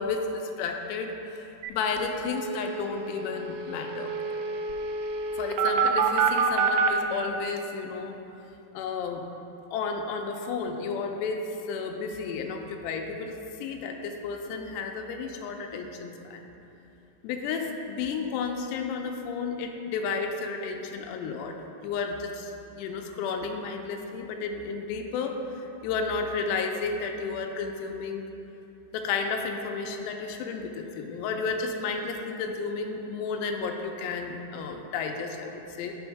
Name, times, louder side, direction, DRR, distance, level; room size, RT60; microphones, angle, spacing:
voice 1, 0.0-4.1 5.4-8.2 8.7-9.2 9.7-16.4 17.2-21.6 21.8-28.2 28.9-36.0, left 4 dB, 85° left, 3 dB, 2.6 m, -32 dB
sound 1, 1.6-1.7 2.0-2.1 2.3-6.9, right 5 dB, 80° right, 2.6 m, -27 dB
7.9 x 6.2 x 4.6 m, 2.9 s
omnidirectional pair, 5.1 m